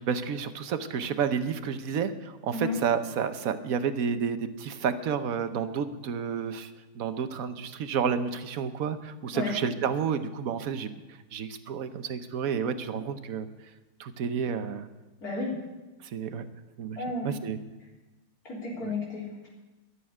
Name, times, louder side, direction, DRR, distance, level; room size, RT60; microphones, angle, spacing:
voice 1, 0.0-10.9 11.3-13.5 14.0-14.9 16.0-16.5 16.8-17.0 17.2-17.6 18.8-18.9, right 7 dB, 65° right, 10 dB, 1.2 m, -30 dB
voice 2, 15.2-15.6 17.0-17.3 18.4-19.5, left 3 dB, 65° left, -4 dB, 4.3 m, -32 dB
13.0 x 7.3 x 9.9 m, 1.1 s
omnidirectional pair, 1.7 m